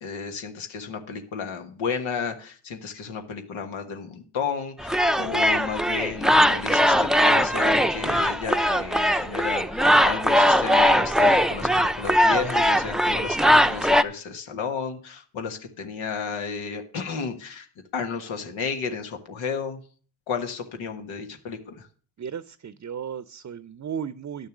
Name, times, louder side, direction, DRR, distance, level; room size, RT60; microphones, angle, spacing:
voice 1, 0.0-17.7 17.9-19.8 20.3-21.9, left 5 dB, 90° left, 5 dB, 1.5 m, -32 dB
sound 1, 4.8-14.0, equal, ahead, 0.6 m, -20 dB
voice 2, 22.2-24.5, right 7 dB, 35° right, 16 dB, 0.7 m, -36 dB
11.0 x 6.6 x 6.0 m, 0.42 s
supercardioid pair, 50°, 46 cm